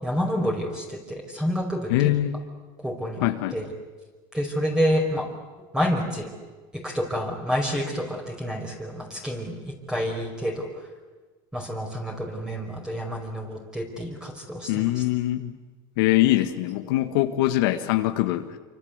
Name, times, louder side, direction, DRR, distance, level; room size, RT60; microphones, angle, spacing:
voice 1, 0.0-2.1 2.8-3.7 4.3-5.3 5.7-6.3 6.7-10.7 11.5-15.0, equal, 5° right, 1 dB, 5.0 m, -28 dB
voice 2, 1.9-2.4 3.2-3.6 14.7-15.5 16.0-18.6, left 15 dB, 85° left, 7 dB, 1.8 m, -23 dB
28.0 x 25.5 x 8.3 m, 1.3 s
supercardioid pair, 135°, 12 cm